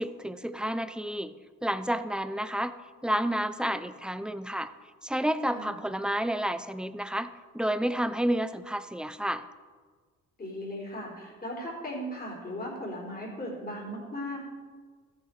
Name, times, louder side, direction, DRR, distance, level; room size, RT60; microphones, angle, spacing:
voice 1, 0.0-1.3 1.6-2.7 3.0-4.7 5.0-9.5, right 1 dB, 5° right, 12 dB, 0.6 m, -30 dB
voice 2, 10.4-14.4, equal, 30° left, -3 dB, 4.1 m, -37 dB
14.0 x 8.8 x 4.9 m, 1.5 s
cardioid pair, 90°, 30 cm